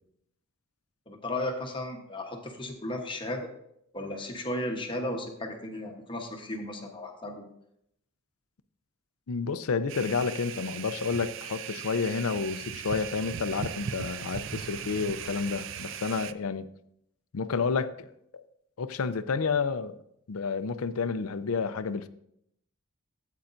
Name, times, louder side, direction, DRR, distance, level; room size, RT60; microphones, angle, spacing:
voice 1, 1.1-3.5 3.9-7.5, left 1 dB, 25° left, 3 dB, 1.0 m, -35 dB
voice 2, 9.3-16.7 17.3-18.1 18.3-18.4 18.8-19.9 20.3-22.1, left 5 dB, 80° left, 13 dB, 0.5 m, -30 dB
sound 1, 9.9-16.3, right 8 dB, 60° right, 0.4 m, -38 dB
13.0 x 8.2 x 2.6 m, 0.75 s
head